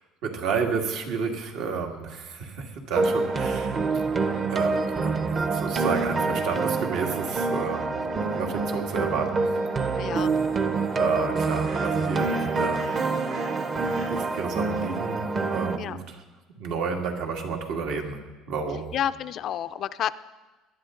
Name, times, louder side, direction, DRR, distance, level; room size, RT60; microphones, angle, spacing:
voice 1, 0.2-3.7 4.5-8.0 8.3-9.5 11.0-13.0 13.7-16.0 16.6-18.2 18.5-18.9, right 5 dB, 70° right, 2 dB, 2.0 m, -31 dB
sound 1, 3.0-15.8, right 3 dB, 30° right, 0.8 m, -26 dB
sound 2, 4.5-15.1, right 3 dB, 90° right, 5.5 m, -51 dB
voice 2, 9.9-10.3 15.8-16.0 18.9-20.2, left 10 dB, 45° left, 14 dB, 0.4 m, -30 dB
19.0 x 11.5 x 3.8 m, 1.2 s
cardioid pair, 135°, 0 cm